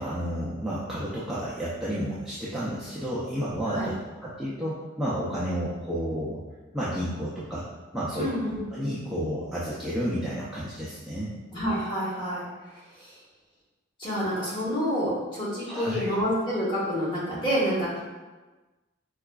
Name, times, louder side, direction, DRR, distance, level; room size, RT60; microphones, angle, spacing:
voice 1, 0.0-3.9 4.2-6.4 6.7-7.6 7.9-8.3 8.7-11.3 15.7-16.1, equal, ahead, -10 dB, 0.3 m, -31 dB
voice 2, 8.2-8.6 11.5-13.2 14.0-18.0, equal, 25° left, -8 dB, 1.0 m, -28 dB
4.7 x 2.3 x 2.2 m, 1.2 s
head